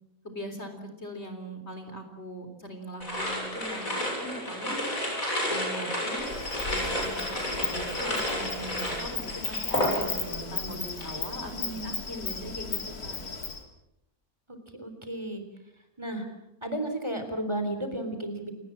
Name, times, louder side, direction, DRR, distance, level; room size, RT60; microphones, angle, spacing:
voice 1, 0.2-4.8 5.5-6.3 6.7-13.1, equal, 45° left, 6 dB, 4.2 m, -40 dB
sound 1, 3.0-10.4 10.7-11.2, equal, 65° left, 8.0 m, -31 dB
Insect, 6.2-13.6, left 4 dB, 85° left, 3.1 m, -35 dB
voice 2, 11.5-12.0 14.8-15.4 16.0-16.3 16.6-18.5, right 1 dB, 20° right, 6 dB, 3.6 m, -33 dB
29.5 x 19.0 x 7.6 m, 0.86 s
omnidirectional pair, 1.6 m